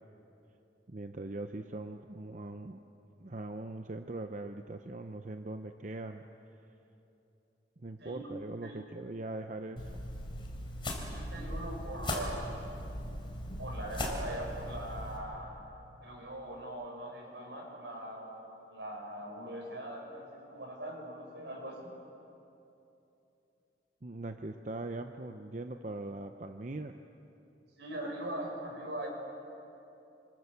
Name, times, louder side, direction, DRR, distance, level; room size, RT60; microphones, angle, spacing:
voice 1, 0.9-2.8 3.2-6.2 7.8-10.0 24.0-27.0, right 2 dB, 45° right, 6 dB, 0.8 m, -41 dB
sound 1, 9.8-15.2, left 1 dB, 30° left, 3.8 m, -38 dB
voice 2, 11.0-12.5 13.6-15.6 16.0-18.4 18.7-21.9 27.8-29.1, right 1 dB, 80° right, 0 dB, 6.8 m, -41 dB
27.0 x 24.5 x 7.1 m, 2.9 s
head